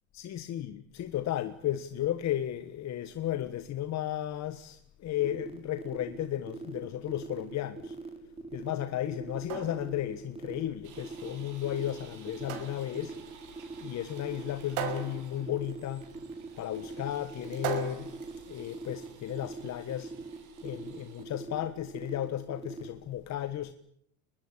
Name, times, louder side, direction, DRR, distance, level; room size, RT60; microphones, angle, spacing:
voice 1, 0.1-8.0 8.5-13.1 13.8-16.1 16.6-18.1 18.5-20.1 20.6-23.7, left 12 dB, 40° left, 1.6 m, -34 dB
sound 1, 5.2-22.9, right 3 dB, 15° right, 5.4 m, -42 dB
sound 2, 9.2-19.2, right 8 dB, 75° right, 6.3 m, -41 dB
sound 3, 10.8-21.2, right 7 dB, 50° right, 6.1 m, -55 dB
23.5 x 20.5 x 9.9 m
supercardioid pair, 115°, 40 cm